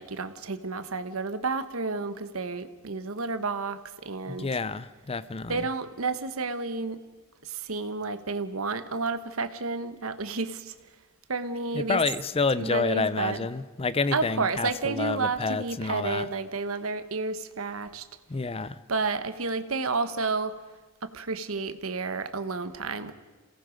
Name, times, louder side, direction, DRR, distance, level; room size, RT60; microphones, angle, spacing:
voice 1, 0.0-4.5 5.5-7.0 7.4-10.7 11.3-12.0 12.6-13.4 14.1-18.0 18.9-20.5 21.0-23.1, right 4 dB, 85° right, 11 dB, 1.2 m, -31 dB
voice 2, 4.3-5.7 11.7-16.3 18.3-18.7, left 4 dB, 30° left, 16 dB, 0.6 m, -29 dB
28.0 x 18.0 x 5.2 m, 1.3 s
head